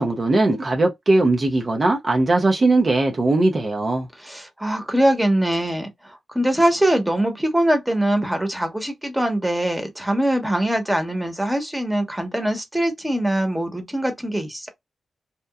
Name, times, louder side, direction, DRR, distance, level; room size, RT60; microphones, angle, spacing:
voice 1, 0.0-4.1, right 2 dB, 50° right, 0.7 m, -19 dB
voice 2, 4.2-14.7, right 1 dB, 10° right, 1.1 m, -22 dB
2.9 x 2.2 x 2.3 m
cardioid pair, 45°, 0 cm